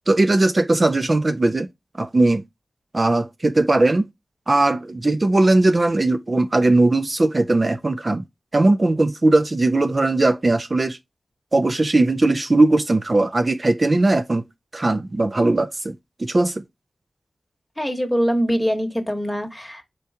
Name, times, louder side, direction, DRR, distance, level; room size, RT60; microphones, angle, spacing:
voice 1, 0.1-1.7 2.0-2.4 2.9-4.1 4.5-8.2 8.5-11.0 11.5-14.4 14.7-16.6, right 2 dB, 45° right, 0.3 m, -19 dB
voice 2, 17.8-19.8, equal, 5° left, 1.0 m, -23 dB
4.4 x 2.7 x 3.4 m
cardioid pair, 50°, 0 cm